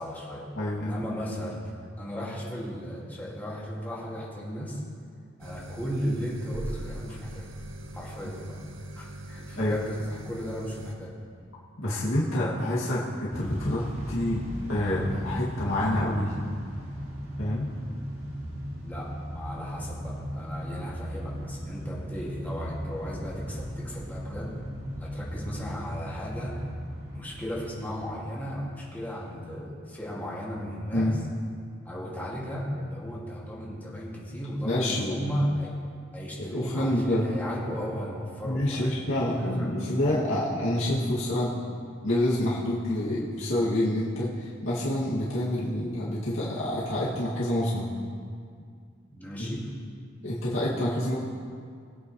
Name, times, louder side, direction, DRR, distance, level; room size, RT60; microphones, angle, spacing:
voice 1, 0.0-0.5 0.8-1.7 2.0-4.8 5.4-7.5 7.9-8.6 9.0-11.1 18.8-24.5 25.0-26.6 27.1-31.2 31.8-35.8 36.1-39.7 49.1-49.7, equal, 10° left, -6 dB, 2.1 m, -35 dB
voice 2, 0.6-0.9 8.2-8.3 9.6-9.8 11.8-16.3 17.4-17.7 30.9-31.1 34.6-35.2 36.4-37.3 38.4-41.6 42.0-47.9 49.4-49.6 50.2-51.2, left 1 dB, 80° left, -8 dB, 2.2 m, -27 dB
sound 1, 5.4-10.9, right 1 dB, 80° right, 0.9 m, -41 dB
Motor vehicle (road) / Engine starting / Accelerating revving vroom, 13.3-28.3, equal, 55° right, 3.7 m, -37 dB
21.5 x 8.6 x 3.1 m, 2.2 s
head